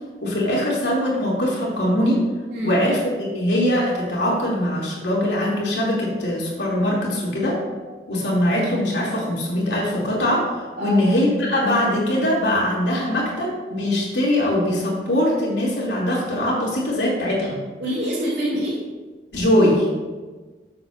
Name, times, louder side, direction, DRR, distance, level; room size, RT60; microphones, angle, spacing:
voice 1, 0.2-2.2 2.6-7.6 8.1-10.5 10.8-17.6 19.3-19.9, left 1 dB, 85° left, -4 dB, 3.1 m, -21 dB
voice 2, 2.5-2.8 10.8-11.0 17.8-18.8, equal, 85° right, -10 dB, 2.5 m, -25 dB
13.5 x 7.6 x 2.7 m, 1.3 s
head